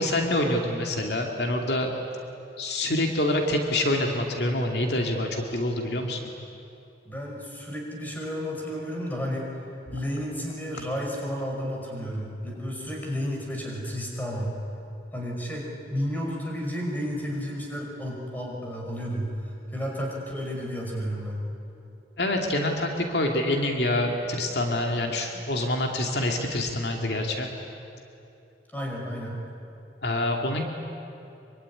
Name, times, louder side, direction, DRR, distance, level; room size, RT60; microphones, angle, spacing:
voice 1, 0.0-1.9 2.6-6.2 22.2-27.5 30.0-30.6, left 1 dB, 70° left, 2 dB, 2.4 m, -26 dB
voice 2, 7.0-9.5 9.9-14.6 15.1-21.5 28.7-29.4, equal, 10° left, -1 dB, 5.4 m, -32 dB
25.0 x 24.0 x 9.8 m, 2.8 s
head